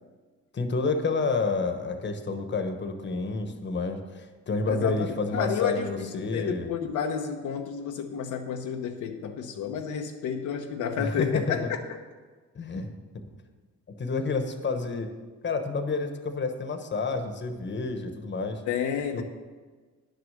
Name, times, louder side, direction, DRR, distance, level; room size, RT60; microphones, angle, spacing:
voice 1, 0.5-6.7 11.0-11.7 12.5-12.9 14.0-15.1 15.4-18.6 19.1-19.2, left 3 dB, 35° left, 6 dB, 1.2 m, -29 dB
voice 2, 4.7-11.6 18.7-19.2, left 7 dB, 80° left, 3 dB, 0.9 m, -31 dB
10.0 x 6.5 x 6.5 m, 1.4 s
cardioid pair, 90°, 30 cm